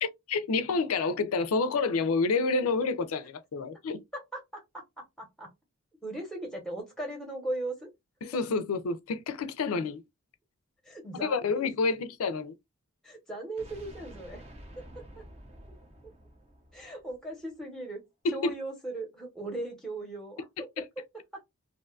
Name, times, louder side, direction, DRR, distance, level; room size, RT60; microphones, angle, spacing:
voice 1, 0.0-4.0 8.2-10.0 11.1-12.6 18.2-18.5 20.8-20.9, left 4 dB, 80° left, 0.4 m, -29 dB
voice 2, 4.1-5.5 6.0-7.9 10.8-11.7 13.0-14.4 14.8-15.3 16.7-18.0 18.3-20.7 21.3-21.4, right 2 dB, ahead, 0.8 m, -38 dB
sound 1, 13.6-17.5, equal, 30° right, 0.6 m, -50 dB
2.6 x 2.3 x 2.4 m
head